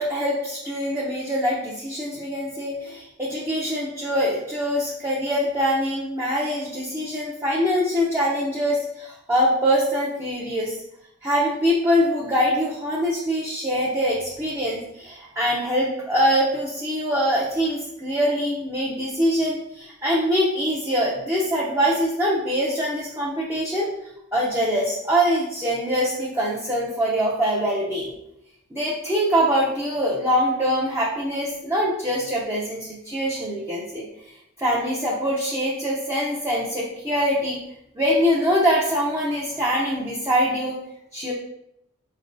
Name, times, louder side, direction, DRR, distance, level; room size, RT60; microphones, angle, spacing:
voice 1, 0.0-10.8 11.2-23.9 24.3-28.1 28.7-37.6 37.9-40.8 41.1-41.3, equal, 10° right, -5 dB, 0.5 m, -23 dB
4.5 x 3.3 x 2.5 m, 0.81 s
head